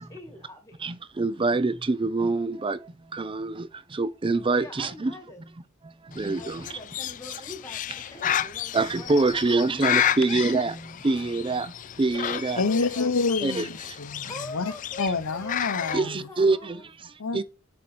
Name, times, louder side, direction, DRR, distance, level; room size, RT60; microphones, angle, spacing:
voice 1, 0.0-0.9 4.4-5.5 6.4-9.4 10.0-10.3 12.5-13.7 14.2-15.5 15.8-16.9, left 2 dB, 15° left, 1.7 m, -43 dB
voice 2, 0.8-5.1 5.8-6.8 8.2-8.3 8.7-12.6 13.4-13.7 15.9-17.4, right 3 dB, 25° right, 0.5 m, -26 dB
Bird, 6.1-16.0, left 10 dB, 40° left, 0.3 m, -32 dB
voice 3, 12.6-16.3 17.2-17.4, left 4 dB, 80° left, 0.8 m, -28 dB
7.7 x 4.4 x 4.3 m
head